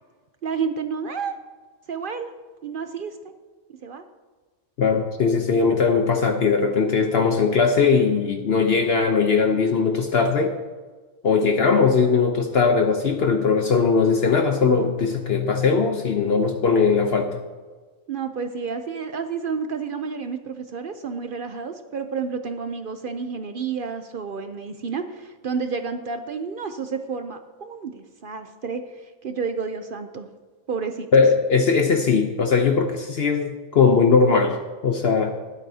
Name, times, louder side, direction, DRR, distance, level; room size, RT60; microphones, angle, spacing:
voice 1, 0.4-1.4 1.9-2.3 2.6-3.2 3.8-4.0 18.1-30.3 30.7-31.1, right 5 dB, 55° right, 8 dB, 0.6 m, -30 dB
voice 2, 4.8-10.5 11.2-17.3 31.1-34.6 34.8-35.3, left 5 dB, 55° left, 5 dB, 0.9 m, -19 dB
21.0 x 8.2 x 2.8 m, 1.3 s
omnidirectional pair, 1.4 m